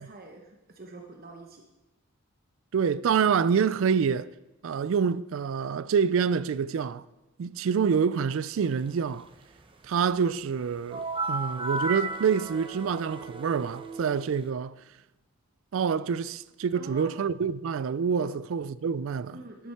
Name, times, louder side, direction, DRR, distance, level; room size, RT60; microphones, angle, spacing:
voice 1, 0.0-1.6 16.7-17.2 18.2-18.3 19.3-19.7, right 2 dB, 45° right, 1.0 m, -45 dB
voice 2, 2.7-4.3 4.6-7.0 7.4-9.3 9.8-14.8 15.7-19.4, right 6 dB, 65° right, 0.4 m, -27 dB
sound 1, 10.9-14.5, right 3 dB, 25° right, 0.7 m, -34 dB
11.0 x 7.7 x 5.7 m
head